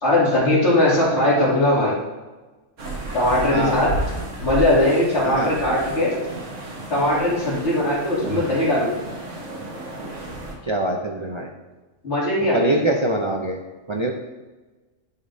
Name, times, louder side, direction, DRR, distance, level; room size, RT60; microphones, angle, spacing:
voice 1, 0.0-1.9 3.1-3.9 4.4-6.2 6.9-8.9 12.0-12.8, left 1 dB, 65° left, -7 dB, 2.8 m, -19 dB
sound 1, 2.8-10.5, right 2 dB, 75° right, 1.7 m, -32 dB
voice 2, 10.7-11.5 12.5-13.6 13.9-14.1, right 1 dB, 45° right, 1 dB, 0.4 m, -23 dB
10.0 x 5.4 x 2.6 m, 1.2 s
omnidirectional pair, 1.3 m